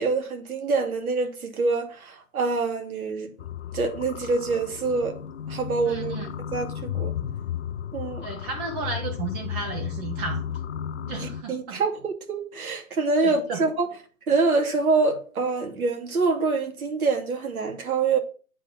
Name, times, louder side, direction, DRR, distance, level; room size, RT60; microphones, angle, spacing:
voice 1, 0.0-3.3 3.7-5.1 5.5-6.1 6.5-7.1 7.9-8.3 11.1-13.9 14.3-18.2, right 4 dB, 80° right, 2.9 m, -25 dB
sound 1, 3.4-11.4, left 9 dB, 55° left, 0.7 m, -34 dB
voice 2, 5.9-6.3 8.2-10.6 11.0-11.8 13.2-13.6, right 4 dB, 30° right, 1.8 m, -33 dB
8.8 x 4.7 x 7.1 m
hypercardioid pair, 150°, 42 cm